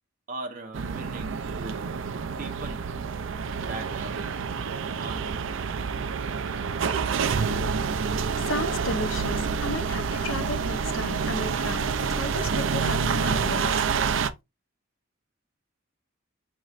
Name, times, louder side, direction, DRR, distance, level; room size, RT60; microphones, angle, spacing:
voice 1, 0.3-2.9 3.5-4.3 4.9-5.5, right 2 dB, 45° right, 0.8 m, -40 dB
sound 1, 0.7-14.3, right 5 dB, 75° right, 0.4 m, -28 dB
voice 2, 8.5-13.9, left 2 dB, 80° left, 0.8 m, -34 dB
5.4 x 3.1 x 2.4 m
head